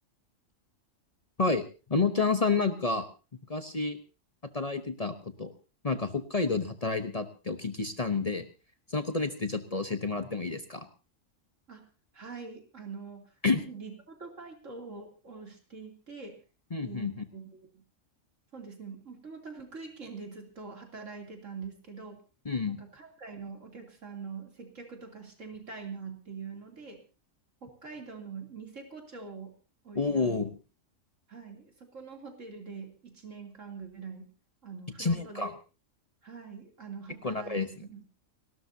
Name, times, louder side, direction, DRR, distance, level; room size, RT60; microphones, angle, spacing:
voice 1, 1.9-3.1 3.5-4.0 4.5-5.5 5.8-8.4 8.9-10.9 13.4-13.6 16.7-17.2 22.4-22.8 29.9-30.5 35.0-35.5 37.2-37.7, left 4 dB, 30° left, 8 dB, 0.9 m, -29 dB
voice 2, 12.1-16.4 16.8-17.8 18.5-22.2 22.7-27.0 27.6-29.5 29.8-30.4 31.3-34.3 34.6-35.5 36.2-38.0, right 5 dB, 75° right, 2 dB, 3.4 m, -44 dB
29.5 x 13.0 x 2.8 m, 0.33 s
omnidirectional pair, 1.3 m